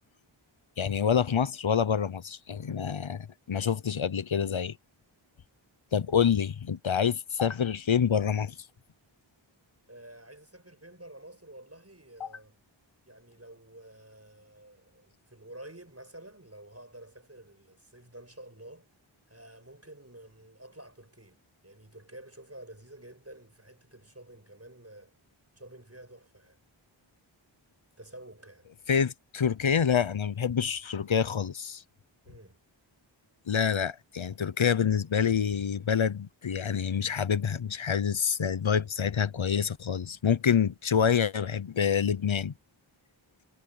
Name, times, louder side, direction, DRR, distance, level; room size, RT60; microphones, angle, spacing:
voice 1, 0.8-4.8 5.9-8.6 12.2-12.3 28.9-31.8 33.5-42.5, left 7 dB, 70° left, 0.8 m, -27 dB
voice 2, 9.9-12.6 13.1-18.9 19.3-25.1 25.5-26.6 28.0-28.7 32.3-32.6, right 1 dB, 30° right, 6.8 m, -50 dB
wide cardioid pair, 40°, 48 cm